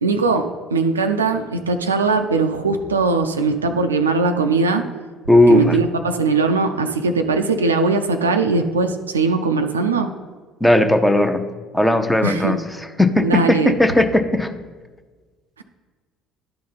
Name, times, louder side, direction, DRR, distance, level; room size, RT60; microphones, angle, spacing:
voice 1, 0.0-4.8 5.5-10.1 12.2-12.6 13.2-13.8 15.6-15.7, right 4 dB, 80° right, 7 dB, 0.4 m, -20 dB
voice 2, 5.3-5.8 10.6-11.4 11.7-12.6 13.0-14.5, left 1 dB, 5° left, 7 dB, 0.6 m, -16 dB
11.5 x 3.8 x 4.0 m, 1.4 s
figure-of-eight pair, 55°, 0 cm